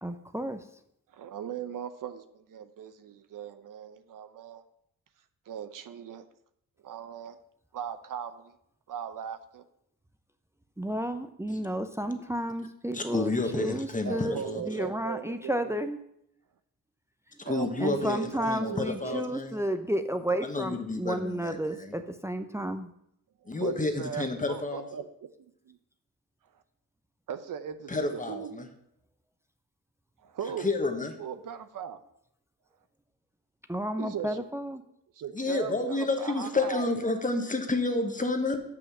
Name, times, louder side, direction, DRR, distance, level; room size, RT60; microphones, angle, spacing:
voice 1, 0.0-0.6 10.8-16.0 17.8-22.9 33.7-34.8, right 1 dB, 10° right, 8 dB, 0.6 m, -32 dB
voice 2, 1.1-4.6 5.5-6.2 6.8-7.4 7.7-8.5 8.9-9.6 14.0-15.7 17.4-19.3 23.4-25.3 25.7-25.8 27.3-28.5 30.2-30.7 31.2-32.0 34.0-34.4 35.1-37.1, right 8 dB, 65° right, 11 dB, 0.7 m, -38 dB
voice 3, 12.9-14.6 17.4-19.6 20.4-21.9 23.5-24.9 27.9-28.7 30.6-31.1 35.3-38.6, left 3 dB, 20° left, 5 dB, 1.3 m, -30 dB
6.3 x 5.8 x 6.2 m, 0.74 s
cardioid pair, 65°, 35 cm